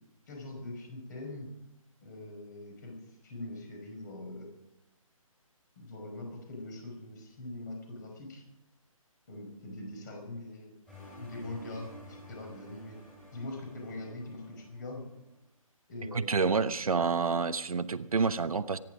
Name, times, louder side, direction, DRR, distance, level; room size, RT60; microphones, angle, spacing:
voice 1, 0.3-1.5 2.0-3.0 3.2-4.5 5.8-8.4 9.3-10.7 11.2-13.0 13.3-15.1 15.9-16.5, left 2 dB, 30° left, 2 dB, 5.4 m, -42 dB
sound 1, 10.9-15.3, left 1 dB, 5° left, 4.8 m, -51 dB
voice 2, 16.1-18.8, right 4 dB, 80° right, 11 dB, 1.1 m, -28 dB
25.5 x 10.5 x 5.0 m, 0.89 s
hypercardioid pair, 165°, 18 cm